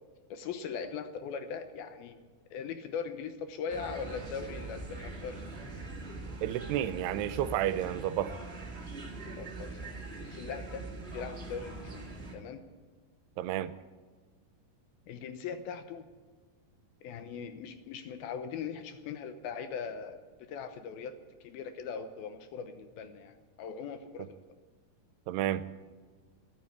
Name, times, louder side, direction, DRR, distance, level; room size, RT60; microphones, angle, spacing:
voice 1, 0.3-2.2 2.5-5.5 9.4-9.9 10.2-10.9 11.1-12.1 12.3-12.6 15.1-16.1 17.0-24.5, left 6 dB, 75° left, 9 dB, 2.7 m, -40 dB
College Ambiance, 3.7-12.3, right 2 dB, 25° right, 1.3 m, -42 dB
voice 2, 6.4-8.3 13.4-13.7 25.3-25.6, right 12 dB, 85° right, 13 dB, 2.8 m, -31 dB
13.5 x 12.0 x 8.3 m, 1.4 s
omnidirectional pair, 4.7 m